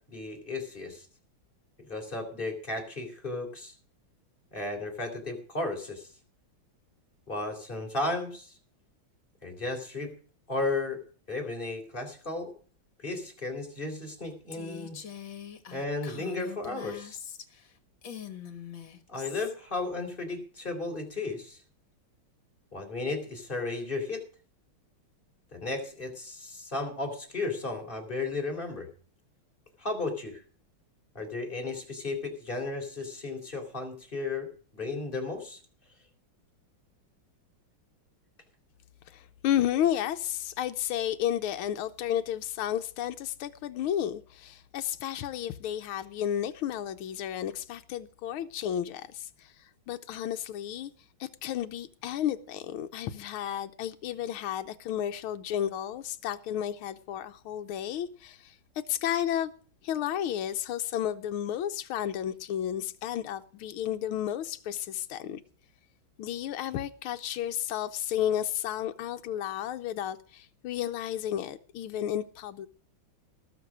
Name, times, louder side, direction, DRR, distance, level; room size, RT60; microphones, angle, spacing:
voice 1, 0.1-1.1 1.9-3.7 4.5-6.1 7.3-8.5 9.4-10.1 10.5-11.0 11.3-12.5 13.0-15.0 15.7-17.2 19.1-21.6 22.7-24.2 25.5-28.9 29.8-30.4 31.2-34.5 34.7-35.6, left 3 dB, 25° left, 3.8 m, -34 dB
Female speech woman speaking, 14.5-17.7 18.0-19.5, left 8 dB, 65° left, 2.2 m, -43 dB
voice 2, 39.1-50.9 51.2-58.5 58.9-59.5 59.8-65.4 66.2-72.7, left 10 dB, 85° left, 1.7 m, -32 dB
19.0 x 6.8 x 6.3 m
omnidirectional pair, 2.3 m